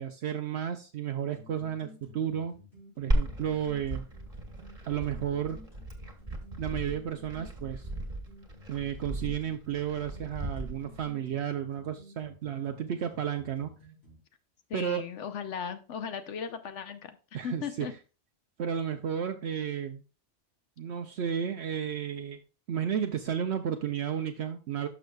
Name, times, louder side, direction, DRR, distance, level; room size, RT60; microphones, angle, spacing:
voice 1, 0.0-2.6 3.0-4.1 4.8-5.6 6.6-7.9 8.7-13.7 14.7-15.0 17.3-17.9 18.6-20.0 20.8-22.4 22.7-24.9, right 9 dB, 70° right, 6 dB, 0.9 m, -32 dB
sound 1, 1.3-14.2, left 3 dB, 60° left, 4.9 m, -53 dB
Glass, 3.1-11.1, right 1 dB, 30° right, 1.5 m, -35 dB
voice 2, 14.7-17.2 17.4-17.9, left 7 dB, 85° left, 9 dB, 1.1 m, -37 dB
12.0 x 6.2 x 2.3 m, 0.33 s
omnidirectional pair, 1.2 m